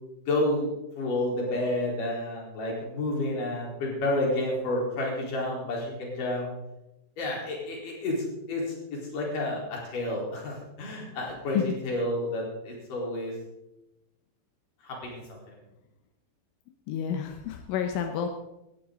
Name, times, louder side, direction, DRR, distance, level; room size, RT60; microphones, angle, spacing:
voice 1, 0.3-0.7 1.0-6.5 7.2-13.3 14.8-15.4, left 1 dB, 45° left, -2 dB, 5.5 m, -30 dB
voice 2, 16.9-18.3, left 8 dB, 85° left, 5 dB, 3.5 m, -29 dB
18.0 x 14.0 x 3.9 m, 0.90 s
omnidirectional pair, 5.4 m